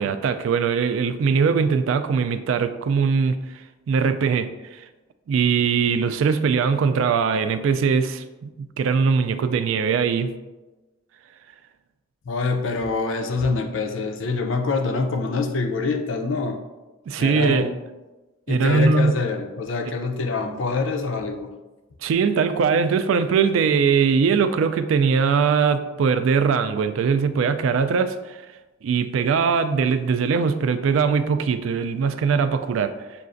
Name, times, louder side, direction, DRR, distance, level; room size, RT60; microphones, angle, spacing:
voice 1, 0.0-3.4 3.9-4.8 5.3-10.3 17.1-17.7 18.5-19.1 22.0-28.4 28.8-32.9, right 5 dB, 70° right, 10 dB, 0.3 m, -21 dB
voice 2, 12.3-16.6 17.2-17.7 18.5-21.5, left 4 dB, 65° left, 4 dB, 0.5 m, -25 dB
6.6 x 2.4 x 2.5 m, 1.1 s
head